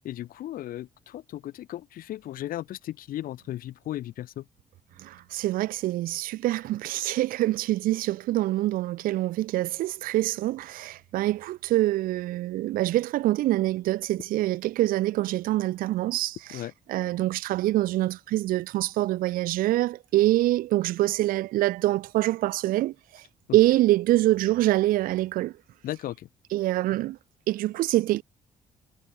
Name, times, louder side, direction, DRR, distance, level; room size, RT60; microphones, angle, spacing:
voice 1, 0.0-4.5 16.5-16.7 23.5-23.6 25.8-26.3, left 13 dB, 70° left, 2.4 m, -36 dB
voice 2, 5.0-16.6 16.9-23.2 23.5-25.5 26.5-27.2 27.5-28.2, right 16 dB, 75° right, 0.9 m, -25 dB
hypercardioid pair, 55°, 15 cm